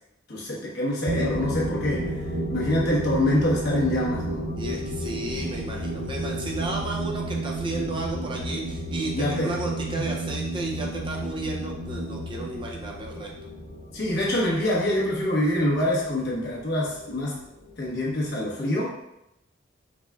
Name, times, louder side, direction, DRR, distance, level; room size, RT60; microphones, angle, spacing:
voice 1, 0.3-2.2 2.5-4.5 9.1-9.5 13.9-17.4 17.8-19.0, left 1 dB, 55° left, -5 dB, 1.2 m, -25 dB
sound 1, 1.1-18.4, left 2 dB, 75° left, 1.1 m, -37 dB
sound 2, 1.1-14.3, right 2 dB, 80° right, 0.6 m, -33 dB
voice 2, 4.6-13.3, right 2 dB, 25° right, -1 dB, 0.5 m, -33 dB
4.8 x 3.4 x 2.4 m, 0.84 s
head